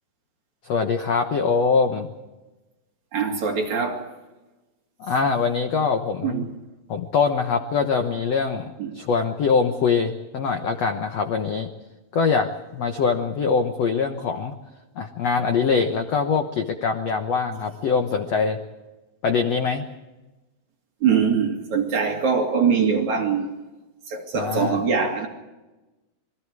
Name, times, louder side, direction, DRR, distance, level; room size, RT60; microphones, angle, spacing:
voice 1, 0.6-2.1 5.0-6.4 6.9-11.7 12.1-14.5 15.0-18.6 19.2-19.8 24.3-24.8, left 5 dB, 70° left, 1.6 m, -23 dB
voice 2, 3.1-4.1 6.2-6.5 8.8-8.9 21.0-23.5 24.1-25.3, right 6 dB, 50° right, 3.8 m, -22 dB
27.5 x 22.5 x 4.8 m
omnidirectional pair, 4.6 m